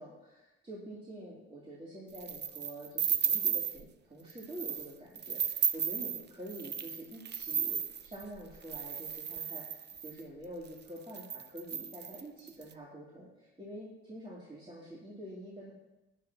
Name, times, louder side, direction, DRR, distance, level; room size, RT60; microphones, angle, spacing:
voice 1, 0.0-15.7, right 1 dB, 20° right, -7 dB, 2.8 m, -47 dB
sound 1, 2.1-3.8 4.3-4.9 5.2-10.2 10.8-10.9 11.1-12.6, right 8 dB, 35° right, 0.5 m, -34 dB
14.5 x 9.6 x 2.9 m, 1.0 s
cardioid pair, 90°, 30 cm